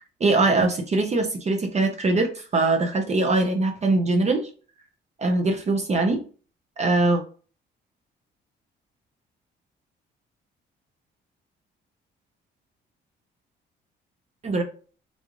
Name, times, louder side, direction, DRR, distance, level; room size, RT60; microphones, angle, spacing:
voice 1, 0.2-4.5 5.2-6.2 6.8-7.2 14.4-14.6, right 2 dB, 35° right, 4 dB, 0.6 m, -22 dB
3.8 x 2.4 x 3.0 m, 0.39 s
cardioid pair, 90°, 20 cm